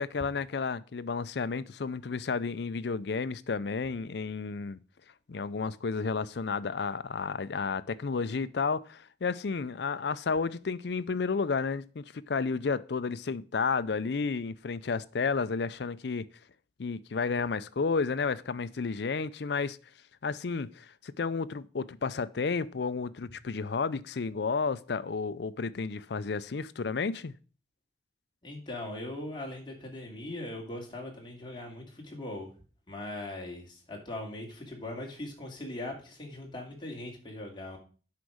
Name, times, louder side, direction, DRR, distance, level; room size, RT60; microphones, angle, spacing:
voice 1, 0.0-4.8 5.3-16.3 16.8-19.8 20.2-27.3, left 4 dB, 65° left, 0.5 m, -32 dB
voice 2, 28.4-32.5 32.9-37.8, left 1 dB, 25° left, 2.6 m, -40 dB
8.2 x 5.3 x 6.3 m
head